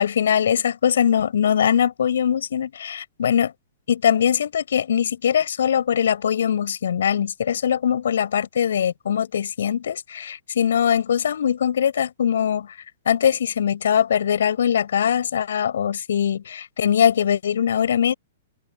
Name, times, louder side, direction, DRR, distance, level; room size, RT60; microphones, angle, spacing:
voice 1, 0.0-3.5 3.9-12.7 13.1-18.1, left 8 dB, 65° left, 7.4 m, -21 dB
figure-of-eight pair, 110°, 0 cm